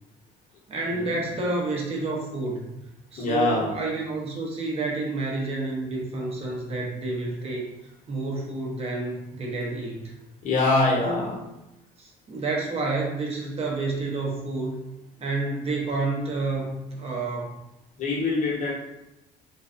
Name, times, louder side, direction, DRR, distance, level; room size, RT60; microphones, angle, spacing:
voice 1, 0.7-2.8 3.1-7.6 8.1-10.1 11.0-11.2 12.0-14.8 15.2-17.6, right 3 dB, 35° right, -2 dB, 0.8 m, -29 dB
voice 2, 3.2-3.7 10.4-11.4 18.0-18.7, left 2 dB, 50° left, -4 dB, 0.9 m, -24 dB
2.4 x 2.3 x 2.4 m, 0.91 s
cardioid pair, 110°, 17 cm